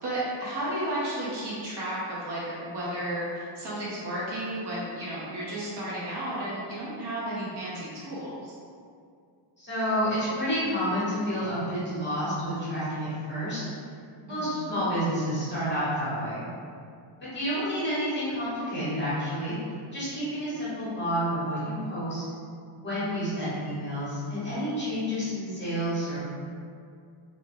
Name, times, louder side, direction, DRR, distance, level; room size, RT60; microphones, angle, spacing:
voice 1, 0.0-8.6 14.3-14.7 22.9-23.2, right 1 dB, 55° right, -8 dB, 1.1 m, -33 dB
voice 2, 9.6-13.6 14.3-16.4 17.3-19.5 19.9-22.2 22.8-26.2, equal, 20° left, -11 dB, 0.9 m, -29 dB
2.9 x 2.2 x 3.5 m, 2.3 s
cardioid pair, 165°, 49 cm